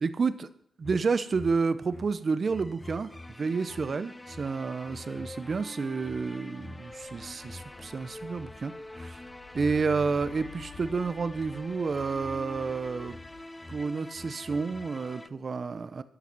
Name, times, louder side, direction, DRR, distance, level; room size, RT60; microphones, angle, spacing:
voice 1, 0.0-0.5 0.8-9.2 9.5-13.2 13.7-16.0, right 4 dB, 50° right, 13 dB, 0.7 m, -30 dB
sound 1, 0.8-15.3, left 2 dB, 15° left, 0.4 m, -44 dB
sound 2, 6.9-13.4, left 7 dB, 65° left, 1.1 m, -54 dB
12.5 x 5.9 x 6.0 m, 0.71 s
cardioid pair, 75°, 0 cm